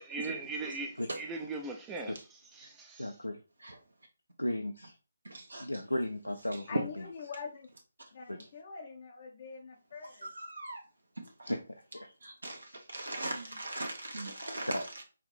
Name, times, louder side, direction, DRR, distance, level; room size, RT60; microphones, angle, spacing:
voice 1, 0.0-2.1 2.5-3.1, right 3 dB, 10° right, 0.4 m, -39 dB
voice 2, 3.0-3.4 4.4-5.0 5.6-7.1 8.3-8.5 11.5-12.1 13.7-13.8 14.7-14.8, left 1 dB, 90° left, 0.5 m, -36 dB
voice 3, 5.2-5.7 10.2-10.8 11.2-11.5 12.2-14.8, right 2 dB, 75° right, 1.0 m, -40 dB
voice 4, 6.7-7.7 8.1-10.3, left 5 dB, 40° left, 0.5 m, -44 dB
5.7 x 2.6 x 3.2 m
figure-of-eight pair, 150°, 0 cm